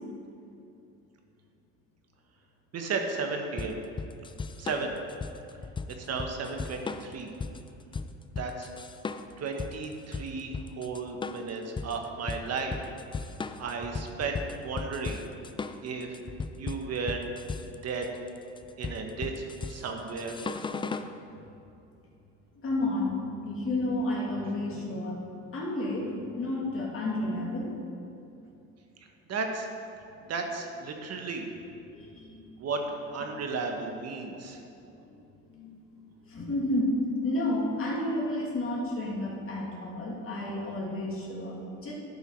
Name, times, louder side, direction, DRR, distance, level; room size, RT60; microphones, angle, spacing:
voice 1, 2.7-3.8 4.6-5.0 5.9-7.3 8.4-8.7 9.4-12.8 13.6-15.2 15.8-16.2 16.6-17.2 17.6-18.1 18.8-20.4 29.3-29.7 30.3-31.5 32.6-32.8 33.1-34.6, right 4 dB, 50° right, 3 dB, 1.4 m, -34 dB
sound 1, 3.6-21.1, left 4 dB, 15° left, 0.4 m, -37 dB
voice 2, 22.6-23.2 23.5-25.2 25.5-27.7 31.9-32.4 35.5-35.7 36.3-41.6 41.8-41.9, left 1 dB, 40° left, -3 dB, 2.4 m, -31 dB
12.0 x 5.7 x 4.6 m, 2.7 s
supercardioid pair, 80°, 34 cm